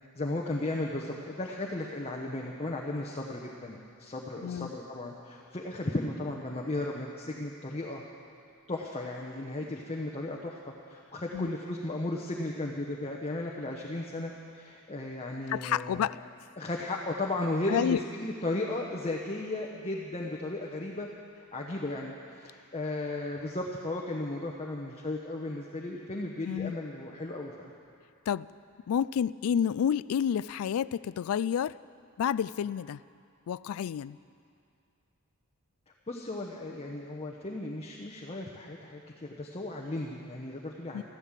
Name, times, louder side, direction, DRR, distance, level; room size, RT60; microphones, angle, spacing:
voice 1, 0.1-8.0 8.7-10.6 10.9-16.1 16.6-21.1 21.4-27.7 36.1-41.0, left 2 dB, 30° left, -1 dB, 1.0 m, -35 dB
voice 2, 15.5-16.2 17.7-18.0 26.4-26.7 28.3-28.5 28.9-31.8 32.2-33.0 33.5-34.2 40.9-41.0, left 8 dB, 70° left, 19 dB, 0.3 m, -29 dB
14.0 x 12.5 x 7.4 m, 2.5 s
head